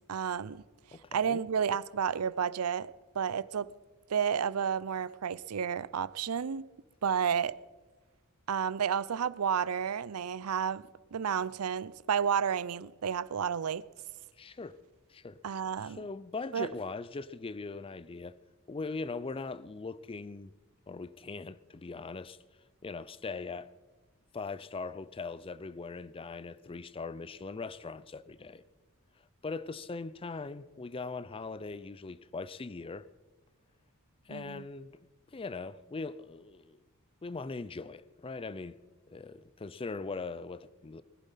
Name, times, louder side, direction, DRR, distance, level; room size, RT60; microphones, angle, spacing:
voice 1, 0.1-0.6 1.1-3.7 4.1-6.7 7.0-7.6 8.5-10.8 11.1-13.8 15.4-16.0 16.5-16.7 34.3-34.6, right 7 dB, 90° right, 0.5 m, -31 dB
voice 2, 0.9-1.5 14.4-14.8 15.1-15.4 15.8-18.3 18.7-20.5 20.9-22.4 22.8-23.7 24.3-28.6 29.4-33.1 34.3-35.0 35.3-36.8 37.2-38.8 39.1-41.0, left 4 dB, 25° left, 0.4 m, -40 dB
20.5 x 12.0 x 5.7 m
head